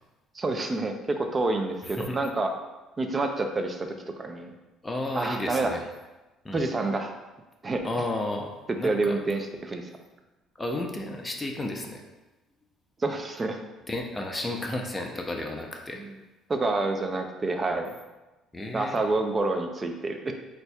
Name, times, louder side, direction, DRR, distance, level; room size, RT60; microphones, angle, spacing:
voice 1, 0.3-2.5 3.0-3.9 4.2-4.5 5.1-5.7 6.5-7.1 7.6-7.8 8.8-9.9 13.0-13.6 16.0-16.1 16.5-17.9 18.7-20.3, right 2 dB, 30° right, 5 dB, 0.6 m, -28 dB
voice 2, 4.8-5.8 6.4-6.6 7.8-9.2 10.6-12.0 13.9-16.0 18.5-19.0, left 2 dB, 15° left, 1 dB, 0.7 m, -32 dB
7.9 x 2.6 x 2.3 m, 1.1 s
supercardioid pair, 80°, 0 cm